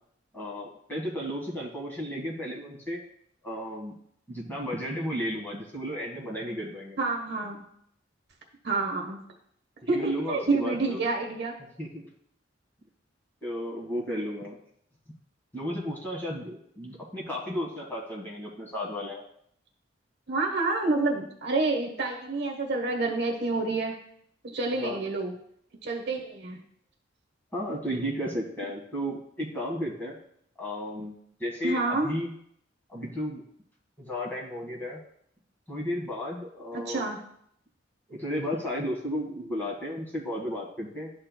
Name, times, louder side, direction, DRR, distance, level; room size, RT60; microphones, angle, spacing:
voice 1, 0.3-3.0 3.4-3.9 4.3-7.0 9.9-11.0 11.8-12.1 13.4-14.6 15.5-19.2 24.8-25.0 27.5-30.2 30.6-32.3 32.9-33.4 34.0-35.0 35.7-37.1 38.1-41.1, equal, 10° left, -4 dB, 1.5 m, -33 dB
voice 2, 7.0-7.6 8.6-9.2 9.9-11.5 20.3-23.9 24.5-25.3 25.8-26.6 31.6-32.1 36.7-37.2, right 3 dB, 60° right, 1 dB, 1.2 m, -28 dB
12.0 x 4.4 x 2.2 m, 0.69 s
head